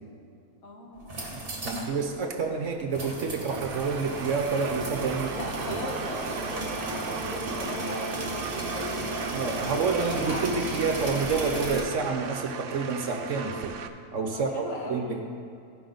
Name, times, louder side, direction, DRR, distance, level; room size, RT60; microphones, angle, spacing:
voice 1, 0.6-1.9 5.3-10.5 14.3-15.2, left 1 dB, 70° left, -1 dB, 1.8 m, -39 dB
sound 1, 1.0-1.9 2.2-2.3 2.9-11.8, right 2 dB, 40° right, 1.8 m, -34 dB
voice 2, 1.6-5.3 5.7-5.8 9.3-13.8 14.1-15.2, right 4 dB, 60° right, 3 dB, 1.2 m, -29 dB
sound 2, 3.5-13.9, right 6 dB, 85° right, 0.5 m, -38 dB
16.0 x 5.7 x 3.9 m, 2.4 s
omnidirectional pair, 1.6 m